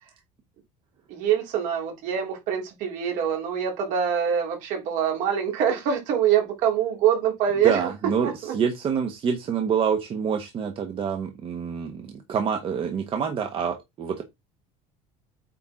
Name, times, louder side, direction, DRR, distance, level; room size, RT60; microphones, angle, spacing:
voice 1, 1.1-7.9 8.2-8.5, right 8 dB, 65° right, 3.3 m, -24 dB
voice 2, 7.6-14.2, right 7 dB, 40° right, 1.3 m, -27 dB
8.3 x 4.4 x 3.7 m
cardioid pair, 130°, 15 cm